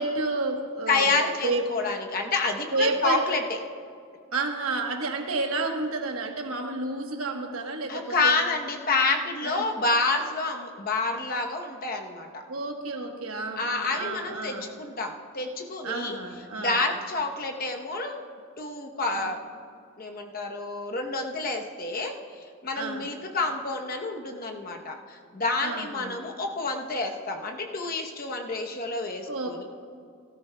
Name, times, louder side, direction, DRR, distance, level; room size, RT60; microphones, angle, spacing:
voice 1, 0.0-1.1 1.4-1.6 2.7-3.4 4.3-8.4 9.4-9.7 12.5-14.7 15.8-16.8 19.1-19.3 22.8-23.1 25.6-26.2 29.3-29.6, right 3 dB, 75° right, 4 dB, 1.1 m, -30 dB
voice 2, 0.9-3.4 7.9-12.4 13.6-16.2 16.6-18.2 18.6-19.4 20.0-29.6, left 3 dB, 40° left, 3 dB, 0.9 m, -28 dB
18.0 x 13.5 x 2.2 m, 2.2 s
head